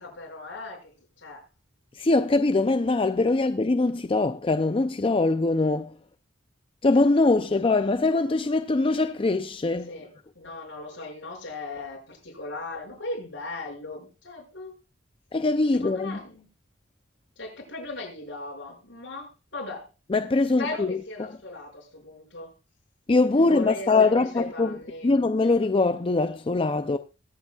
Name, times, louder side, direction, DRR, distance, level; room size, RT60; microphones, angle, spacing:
voice 1, 0.0-1.4 9.9-14.7 15.7-16.5 17.4-19.9 20.6-22.5 23.3-25.1, left 2 dB, 70° left, 6.0 m, -38 dB
voice 2, 1.9-5.9 6.8-9.9 15.3-16.2 20.1-21.0 23.1-24.8 25.0-27.0, left 3 dB, 30° left, 0.5 m, -22 dB
22.5 x 8.1 x 2.3 m
head